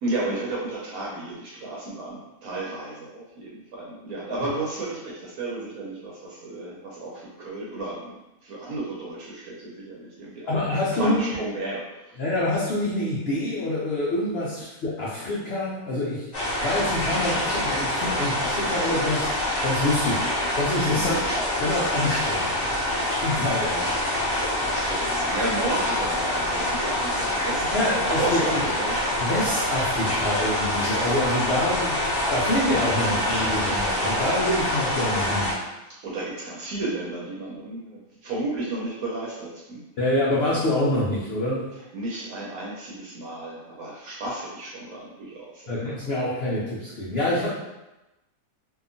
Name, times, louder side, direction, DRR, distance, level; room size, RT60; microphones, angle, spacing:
voice 1, 0.0-8.2 8.4-12.2 20.9-21.2 23.4-23.5 24.6-29.0 36.0-39.8 41.9-45.9, right 2 dB, 75° right, -4 dB, 1.0 m, -33 dB
voice 2, 10.5-11.2 12.2-16.3 16.6-19.3 19.6-22.6 23.2-24.0 27.7-28.6 29.2-35.5 40.0-41.7 45.7-47.5, left 1 dB, 80° left, -6 dB, 0.5 m, -26 dB
sound 1, 16.3-35.5, left 1 dB, 50° left, 1.0 m, -26 dB
2.7 x 2.3 x 2.5 m, 0.99 s
omnidirectional pair, 1.7 m